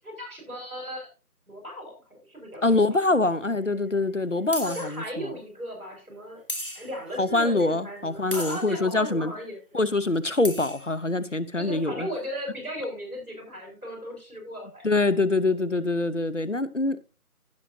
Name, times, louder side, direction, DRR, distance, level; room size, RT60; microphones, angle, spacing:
voice 1, 0.0-1.1 1.5-3.0 4.6-6.4 6.7-9.8 11.6-14.8, equal, 65° right, 5.7 m, -36 dB
voice 2, 2.6-5.3 7.2-9.3 9.7-12.1 14.8-17.0, left 2 dB, 55° left, 0.9 m, -24 dB
sound 1, 3.3-3.4 4.5-5.0 6.5-7.1 8.3-8.7 10.1-10.2 10.4-10.9, equal, 35° left, 1.5 m, -35 dB
16.0 x 6.5 x 2.7 m
figure-of-eight pair, 175°, 45 cm